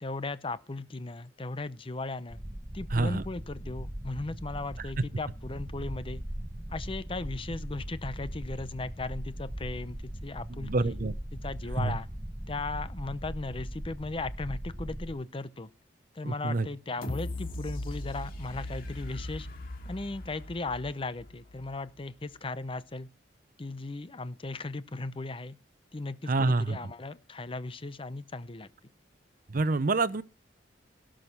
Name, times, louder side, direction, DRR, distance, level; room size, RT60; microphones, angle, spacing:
voice 1, 0.0-2.4 2.7-6.2 6.7-11.0 11.3-12.1 12.5-15.7 16.1-19.5 19.8-23.1 23.6-25.6 25.9-28.7, left 3 dB, 30° left, 0.7 m, -37 dB
sound 1, 2.3-15.1, equal, 15° right, 1.2 m, -39 dB
voice 2, 2.9-3.2 10.6-11.1 11.8-12.0 16.2-16.7 26.3-26.8 29.5-30.2, right 3 dB, 50° right, 0.7 m, -27 dB
sound 2, 17.0-21.9 22.4-22.5, left 1 dB, 50° left, 2.6 m, -39 dB
17.5 x 6.4 x 5.9 m
head